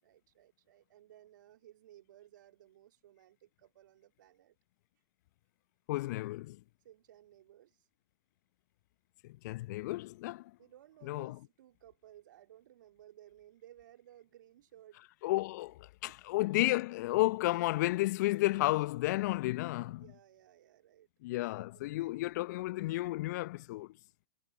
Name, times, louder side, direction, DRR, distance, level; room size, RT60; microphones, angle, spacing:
voice 1, 0.0-4.6 6.8-7.9 10.6-15.1 16.1-16.2 19.9-22.1, right 12 dB, 65° right, 3.3 m, -59 dB
voice 2, 5.9-6.6 9.2-10.6 11.1-11.4 15.2-20.1 21.2-24.0, left 19 dB, 55° left, 0.8 m, -32 dB
figure-of-eight pair, 100°, 11 cm